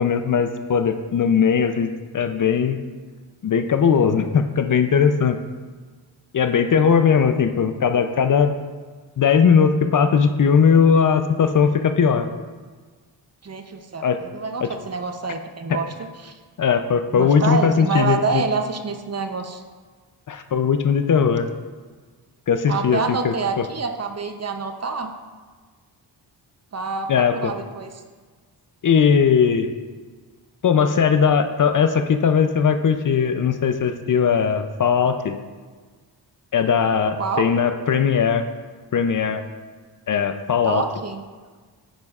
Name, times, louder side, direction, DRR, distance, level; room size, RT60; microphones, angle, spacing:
voice 1, 0.0-2.8 3.4-5.4 6.3-8.5 9.2-12.3 14.0-14.2 14.6-14.7 15.7-15.8 16.6-18.4 20.3-21.5 22.5-23.0 23.2-23.6 27.1-27.5 28.8-29.7 30.6-35.4 36.5-38.5 38.9-39.4 40.1-40.8, left 6 dB, 45° left, 8 dB, 0.6 m, -19 dB
voice 2, 13.4-16.4 17.1-19.6 22.7-25.1 26.7-27.9 37.2-37.5 40.6-41.2, right 4 dB, 35° right, 6 dB, 0.7 m, -27 dB
9.4 x 9.1 x 2.4 m, 1.5 s
cardioid pair, 80°, 43 cm